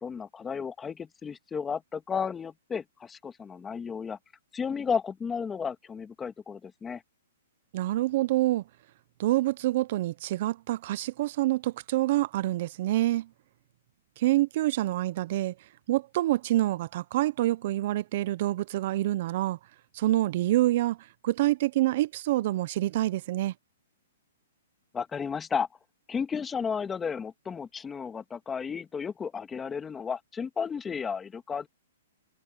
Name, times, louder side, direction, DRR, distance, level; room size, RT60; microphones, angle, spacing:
voice 1, 0.0-4.2 4.5-7.0 24.9-25.7 26.1-31.7, left 6 dB, 15° left, 1.9 m, -33 dB
voice 2, 7.7-8.6 9.2-13.3 14.2-15.5 15.9-19.6 19.9-21.0 21.2-23.5, right 15 dB, 50° right, 0.7 m, -26 dB
hypercardioid pair, 140°, 0 cm